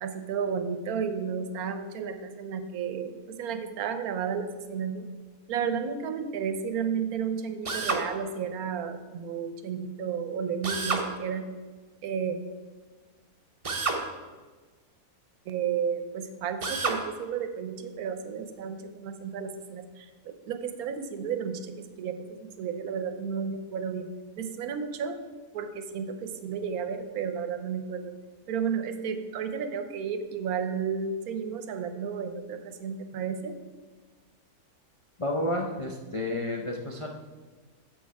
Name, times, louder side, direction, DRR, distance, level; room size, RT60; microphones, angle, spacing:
voice 1, 0.0-5.1 5.5-11.4 12.0-12.4 15.5-24.1 24.4-25.2 25.5-28.1 28.5-33.6, right 6 dB, 75° right, 9 dB, 1.2 m, -32 dB
Drill, 7.6-8.1 10.6-11.1 13.6-14.0 16.6-17.0, right 4 dB, 30° right, 0.7 m, -28 dB
voice 2, 35.2-37.1, left 1 dB, 45° left, 0 dB, 0.4 m, -30 dB
7.6 x 6.4 x 4.7 m, 1.4 s
omnidirectional pair, 1.6 m